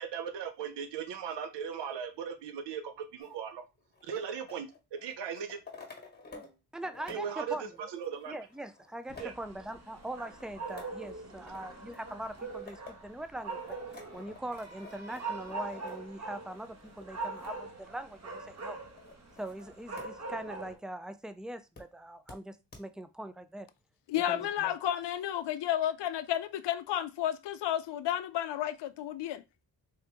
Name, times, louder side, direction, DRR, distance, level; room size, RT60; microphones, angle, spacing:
voice 1, 0.0-3.6 4.1-5.6 7.1-8.4 9.2-9.3, right 7 dB, 90° right, 0.8 m, -38 dB
sound 1, 3.2-6.6 6.8-20.1 20.5-20.6 21.8-21.9 22.3-22.4 22.7-22.8, left 3 dB, 25° left, 1.5 m, -53 dB
voice 2, 6.7-7.7 8.3-13.8 14.1-18.8 19.4-23.7 24.3-24.7, right 1 dB, ahead, 0.3 m, -42 dB
sound 2, 9.1-20.8, right 3 dB, 40° right, 1.3 m, -43 dB
voice 3, 24.1-29.4, left 11 dB, 80° left, 0.5 m, -32 dB
3.7 x 2.8 x 3.4 m
cardioid pair, 75°, 41 cm